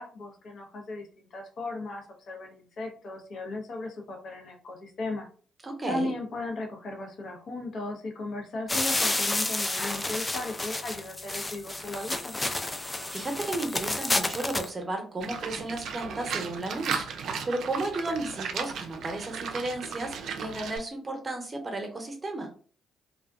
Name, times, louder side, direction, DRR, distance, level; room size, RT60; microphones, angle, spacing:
voice 1, 0.0-5.3 5.8-12.4, left 2 dB, 60° left, 1 dB, 0.8 m, -36 dB
voice 2, 5.6-6.1 13.1-22.5, right 2 dB, 30° right, 3 dB, 0.8 m, -34 dB
sound 1, 8.7-14.7, left 2 dB, 20° left, 0.4 m, -30 dB
Livestock farm animals working animals, 15.2-20.8, right 6 dB, 65° right, 0.4 m, -35 dB
2.4 x 2.3 x 2.3 m, 0.42 s
hypercardioid pair, 50°, 0 cm